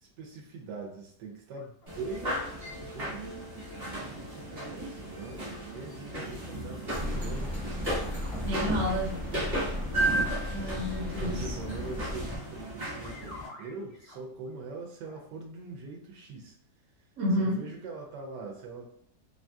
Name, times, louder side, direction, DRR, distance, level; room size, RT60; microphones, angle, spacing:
voice 1, 0.0-3.4 4.0-7.8 9.5-9.8 11.2-16.6 17.4-18.9, right 4 dB, 85° right, 0 dB, 1.2 m, -42 dB
sound 1, 1.5-2.0 7.8-7.9 8.1-8.8 9.7-9.8 13.0-14.5 15.0-15.2, left 2 dB, 65° left, 0.6 m, -48 dB
sound 2, 1.9-13.5, right 1 dB, 35° right, 0.8 m, -35 dB
sound 3, 6.9-12.4, left 1 dB, ahead, 0.4 m, -36 dB
voice 2, 8.4-9.2 10.5-11.6 17.2-17.6, left 1 dB, 60° right, -1 dB, 1.1 m, -30 dB
2.9 x 2.6 x 2.2 m, 0.68 s
omnidirectional pair, 1.8 m